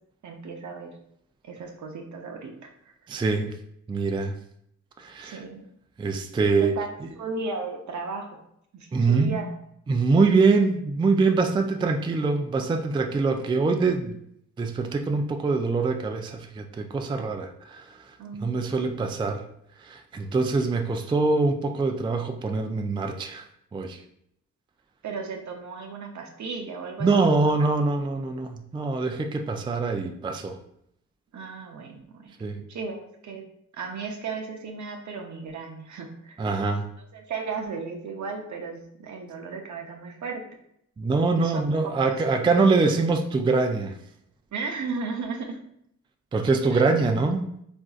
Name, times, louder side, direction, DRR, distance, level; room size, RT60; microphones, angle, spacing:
voice 1, 0.2-0.9 1.4-2.9 5.2-5.7 6.6-6.9 7.2-8.4 8.7-9.5 18.2-18.7 25.0-27.5 31.3-32.3 32.7-33.4 33.7-36.4 37.0-40.4 41.3-41.6 44.5-45.6 46.7-46.8, right 4 dB, 60° right, 3 dB, 0.7 m, -35 dB
voice 2, 3.1-3.5 3.9-4.3 5.0-5.4 6.0-6.7 8.9-9.4 9.9-14.2 14.6-18.1 18.4-19.4 19.8-23.5 23.7-24.0 27.0-30.6 32.4-32.6 36.4-36.8 41.0-44.0 46.3-47.5, right 3 dB, 15° right, 5 dB, 0.3 m, -24 dB
3.5 x 2.6 x 2.4 m, 0.73 s
supercardioid pair, 50°, 34 cm